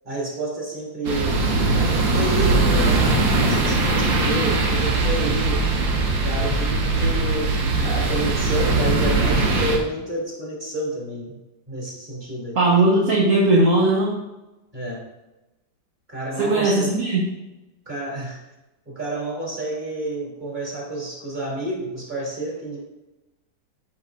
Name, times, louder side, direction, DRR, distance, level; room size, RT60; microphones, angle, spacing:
voice 1, 0.0-5.7 6.2-11.4 11.7-12.6 14.7-15.0 16.1-16.9 17.8-18.4 18.8-22.8, right 1 dB, 25° right, -4 dB, 3.3 m, -29 dB
sound 1, 1.0-9.8, right 3 dB, 90° right, 2.0 m, -20 dB
voice 2, 12.5-14.2 16.4-17.3, right 2 dB, 45° right, -4 dB, 1.6 m, -18 dB
14.0 x 6.4 x 2.6 m, 1.0 s
omnidirectional pair, 2.0 m